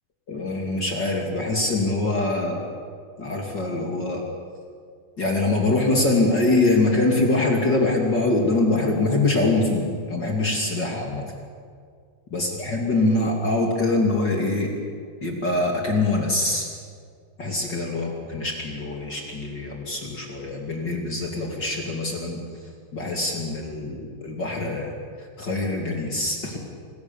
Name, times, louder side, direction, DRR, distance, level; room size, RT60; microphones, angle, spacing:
voice 1, 0.3-2.6 3.2-4.2 5.2-11.3 12.3-14.7 15.2-16.7 17.4-22.4 22.9-24.9 25.2-26.6, left 2 dB, 35° left, 0 dB, 1.8 m, -24 dB
27.0 x 20.0 x 7.1 m, 2.1 s
omnidirectional pair, 5.8 m